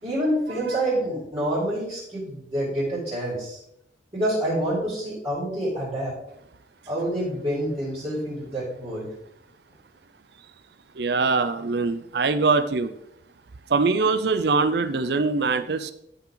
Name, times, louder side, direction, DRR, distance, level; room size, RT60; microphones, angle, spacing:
voice 1, 0.0-3.6 4.1-6.1 6.9-9.1, right 1 dB, 30° right, -12 dB, 4.5 m, -27 dB
voice 2, 11.0-12.9 13.7-15.9, right 4 dB, 60° right, 11 dB, 0.5 m, -23 dB
13.0 x 5.8 x 3.9 m, 0.74 s
head